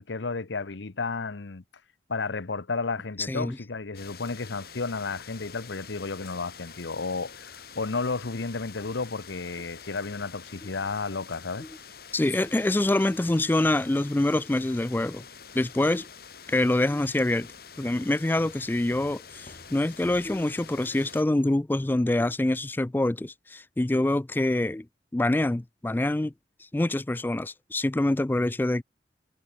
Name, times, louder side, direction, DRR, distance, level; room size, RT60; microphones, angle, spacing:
voice 1, 0.0-1.6 2.1-11.6, left 4 dB, 85° left, 1.0 m, -32 dB
sound 1, 3.9-21.2, left 6 dB, 55° left, 6.8 m, -47 dB
voice 2, 12.1-15.3 15.5-16.1 16.5-17.5 17.8-24.9 25.1-26.3 26.7-28.8, left 1 dB, 10° left, 0.3 m, -25 dB
Walk footsteps, 17.3-20.6, left 1 dB, 40° left, 2.4 m, -52 dB
head